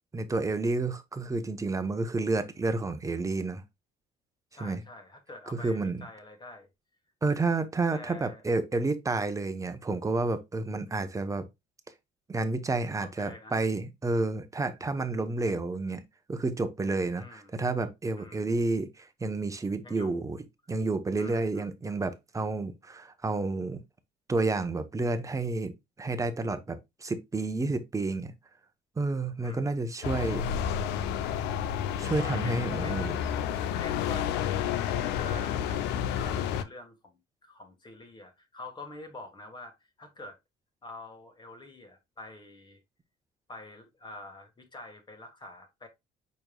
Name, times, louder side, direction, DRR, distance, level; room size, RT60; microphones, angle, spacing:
voice 1, 0.1-3.6 4.6-4.8 5.5-6.0 7.2-11.5 12.3-16.0 16.3-20.4 20.7-23.8 24.3-25.7 26.0-28.3 29.0-30.5 32.0-33.1, right 3 dB, 20° right, 0.9 m, -30 dB
voice 2, 4.5-6.7 7.9-8.4 13.0-13.6 14.1-14.4 17.1-17.6 18.2-18.5 19.8-20.3 21.2-21.8 29.4-29.6 32.0-32.5 32.8-33.0 33.8-40.4 40.8-42.8 43.5-45.9, left 2 dB, 25° left, 1.5 m, -46 dB
sound 1, 30.0-36.6, left 9 dB, 90° left, 0.6 m, -30 dB
5.2 x 4.5 x 2.3 m
cardioid pair, 110°, 17 cm